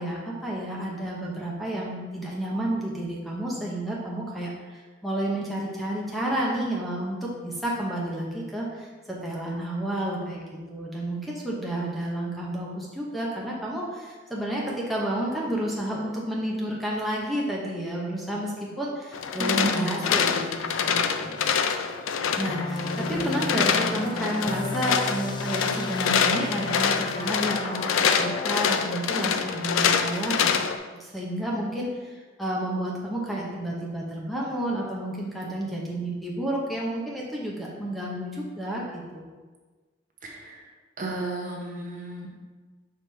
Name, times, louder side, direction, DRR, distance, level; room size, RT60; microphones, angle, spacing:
voice 1, 0.0-10.4 10.7-21.4 22.4-30.6 31.0-39.2, right 1 dB, ahead, -4 dB, 0.8 m, -31 dB
sound 1, 19.1-30.8, left 6 dB, 90° left, 0.4 m, -26 dB
voice 2, 19.4-20.4 40.2-40.7 41.0-42.3, right 2 dB, 40° right, -1 dB, 0.8 m, -33 dB
sound 2, 22.5-28.7, left 2 dB, 25° left, 0.3 m, -34 dB
5.8 x 4.9 x 3.4 m, 1.4 s
head